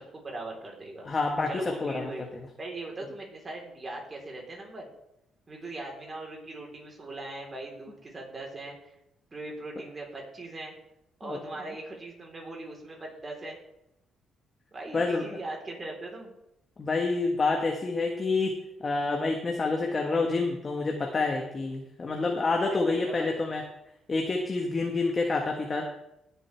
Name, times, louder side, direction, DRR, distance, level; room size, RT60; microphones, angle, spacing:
voice 1, 0.1-1.1 1.5-2.3 2.6-4.9 5.5-9.0 9.3-10.7 11.2-13.6 14.7-16.3 22.6-23.4, right 2 dB, 30° right, -1 dB, 3.9 m, -40 dB
voice 2, 1.0-2.3 11.3-11.4 14.9-15.3 16.8-18.5 18.8-23.6 24.1-25.8, left 3 dB, 35° left, 1 dB, 1.4 m, -28 dB
18.5 x 7.5 x 3.5 m, 0.83 s
cardioid pair, 90°, 0 cm